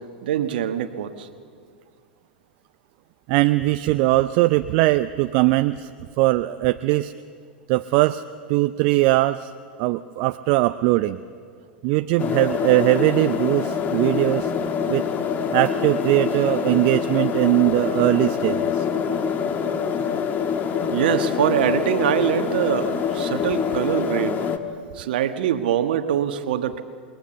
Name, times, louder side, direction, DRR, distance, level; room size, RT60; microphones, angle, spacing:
voice 1, 0.2-1.3 20.9-24.4 24.9-26.8, right 10 dB, 65° right, 9 dB, 1.4 m, -23 dB
voice 2, 3.3-5.9 6.2-7.1 7.7-8.2 8.5-9.5 9.8-11.2 11.8-14.5 14.9-15.0 15.5-18.8, right 18 dB, 50° right, 11 dB, 0.6 m, -20 dB
sound 1, 12.2-24.6, left 7 dB, 30° left, 1.7 m, -25 dB
28.0 x 21.0 x 7.0 m, 2.1 s
hypercardioid pair, 95°, 6 cm